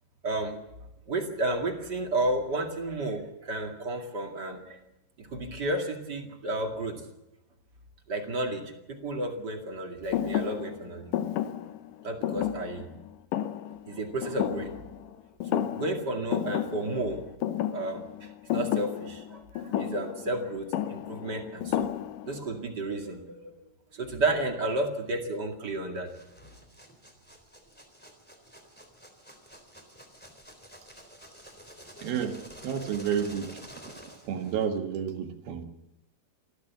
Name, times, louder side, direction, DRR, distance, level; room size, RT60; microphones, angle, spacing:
voice 1, 0.2-0.6 1.1-4.8 5.2-7.0 8.1-11.1 12.0-13.0 13.9-14.7 15.1-15.2 15.5-17.2 17.7-21.9 22.2-23.6 23.9-26.1, right 2 dB, 35° right, 2 dB, 2.0 m, -32 dB
Thump thud, 10.1-15.1 15.4-16.0 16.3-22.4, left 11 dB, 75° left, 2.0 m, -32 dB
sound 1, 26.0-34.8, equal, 5° left, 3.0 m, -50 dB
voice 2, 32.0-33.9 34.3-35.6, right 8 dB, 65° right, 5 dB, 3.3 m, -31 dB
27.5 x 13.0 x 7.2 m, 0.93 s
omnidirectional pair, 4.9 m